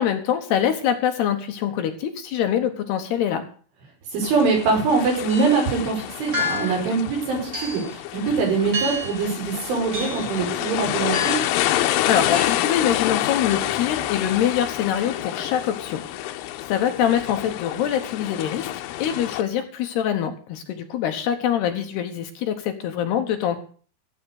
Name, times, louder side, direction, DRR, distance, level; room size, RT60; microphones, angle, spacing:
voice 1, 0.0-3.4 12.1-16.3 16.7-18.7 19.0-23.6, left 9 dB, 70° left, 5 dB, 3.0 m, -24 dB
voice 2, 4.1-11.4, right 4 dB, 75° right, 1 dB, 8.1 m, -23 dB
sound 1, 4.2-19.4, left 14 dB, 85° left, 3.4 m, -28 dB
sound 2, 5.3-5.6 6.3-6.8 7.5-7.9 8.7-9.2 9.9-10.4 11.1-11.6 12.3-12.8, left 2 dB, 25° right, 2.4 m, -29 dB
15.0 x 8.4 x 6.5 m, 0.42 s
omnidirectional pair, 5.5 m